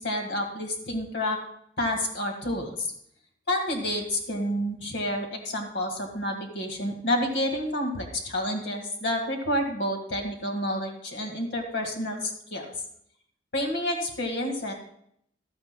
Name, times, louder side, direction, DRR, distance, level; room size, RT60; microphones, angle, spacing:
voice 1, 0.0-1.4 1.8-2.9 3.5-12.7 13.5-14.7, left 1 dB, 65° left, 2 dB, 1.8 m, -29 dB
15.5 x 12.5 x 2.2 m, 0.70 s
head